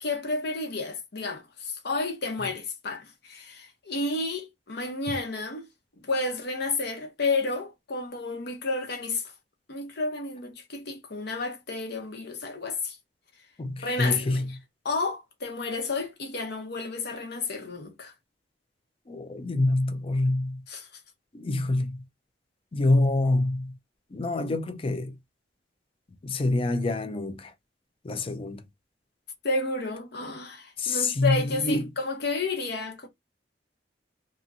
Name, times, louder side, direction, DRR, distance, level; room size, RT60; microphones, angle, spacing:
voice 1, 0.0-5.7 6.0-9.3 9.7-13.0 13.8-14.6 14.8-18.1 20.7-20.9 29.4-33.1, left 3 dB, 65° left, 0.9 m, -31 dB
voice 2, 13.6-14.5 19.1-20.6 21.3-22.0 22.7-23.7 24.1-25.1 26.2-27.5 28.0-28.6 30.8-31.8, left 2 dB, 30° left, 0.4 m, -26 dB
2.9 x 2.5 x 2.5 m
head